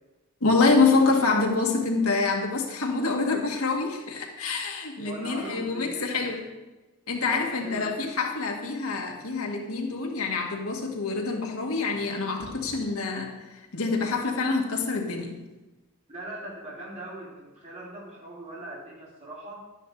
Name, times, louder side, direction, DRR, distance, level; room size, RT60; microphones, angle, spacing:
voice 1, 0.4-6.5 7.1-15.4, left 3 dB, 75° left, 1.7 m, -26 dB
voice 2, 5.0-6.3 7.3-8.1 12.4-12.6 16.1-19.6, right 1 dB, 30° right, 3.8 m, -41 dB
12.0 x 9.8 x 3.9 m
head